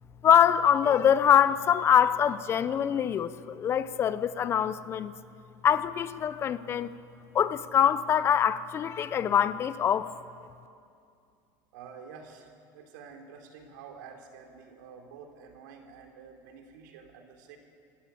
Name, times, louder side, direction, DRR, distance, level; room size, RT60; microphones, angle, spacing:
voice 1, 0.2-5.1 5.6-6.9 7.3-10.1, left 9 dB, 25° left, 0.7 m, -24 dB
voice 2, 11.7-17.6, right 6 dB, 85° right, 3.7 m, -49 dB
25.5 x 17.0 x 8.5 m
cardioid pair, 160°, 10 cm